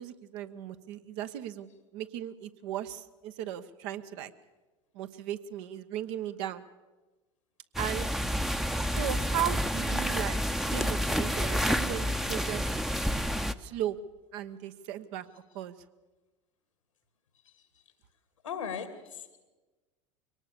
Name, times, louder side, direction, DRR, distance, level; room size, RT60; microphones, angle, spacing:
voice 1, 0.0-1.7 1.9-4.3 4.9-6.6 7.8-8.1 8.9-12.8 13.6-14.0 14.3-15.7, right 11 dB, 65° right, 9 dB, 1.1 m, -36 dB
sound 1, 7.7-13.5, equal, ahead, 0.8 m, -29 dB
voice 2, 17.4-17.8 18.4-19.4, left 7 dB, 85° left, 10 dB, 2.3 m, -39 dB
23.0 x 18.5 x 6.9 m, 1.2 s
hypercardioid pair, 75°, 16 cm